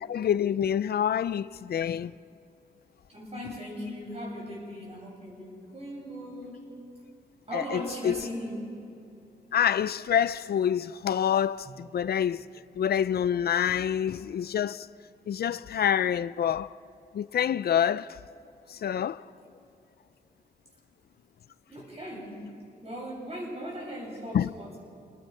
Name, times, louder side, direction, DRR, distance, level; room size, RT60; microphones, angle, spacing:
voice 1, 0.1-2.1 7.5-8.2 9.5-12.4 12.8-14.9 15.3-16.7 17.1-18.2 18.7-19.3 24.3-24.5, left 9 dB, 70° left, 0.4 m, -27 dB
voice 2, 3.1-6.6 7.5-8.7 11.7-11.8 21.7-22.5 22.8-24.8, equal, 35° right, 7.4 m, -38 dB
28.0 x 20.5 x 5.5 m
wide cardioid pair, 135°, 17 cm